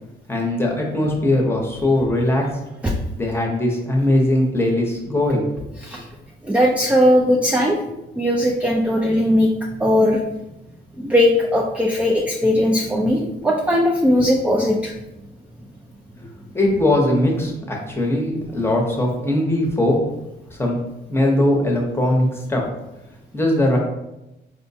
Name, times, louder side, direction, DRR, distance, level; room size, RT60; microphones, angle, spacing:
voice 1, 0.3-2.4 3.2-5.5 16.5-20.0 20.6-20.8 21.1-22.6 23.3-23.8, left 1 dB, 10° left, -1 dB, 0.8 m, -20 dB
voice 2, 6.5-7.8 8.2-9.5 9.8-10.2 11.0-14.9, left 1 dB, 5° right, 0 dB, 0.3 m, -18 dB
4.5 x 2.2 x 2.7 m, 0.92 s
cardioid pair, 90°, 20 cm